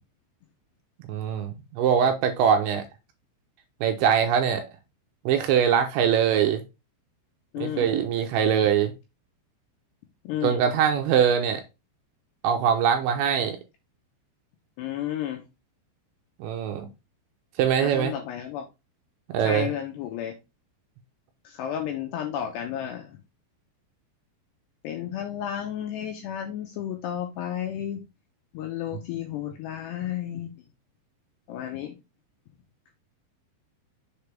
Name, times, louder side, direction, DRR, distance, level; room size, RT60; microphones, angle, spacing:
voice 1, 1.1-2.8 3.8-4.7 5.3-6.6 7.6-8.9 10.4-11.6 12.4-13.6 16.4-16.9 17.6-18.1 19.3-19.7, right 8 dB, 80° right, 2.8 m, -22 dB
voice 2, 7.5-7.9 10.2-10.6 14.8-15.4 17.8-18.6 19.4-20.3 21.4-23.2 24.8-28.0 28.5-30.6 31.5-32.0, left 10 dB, 85° left, 2.5 m, -32 dB
6.9 x 4.9 x 3.4 m
omnidirectional pair, 5.8 m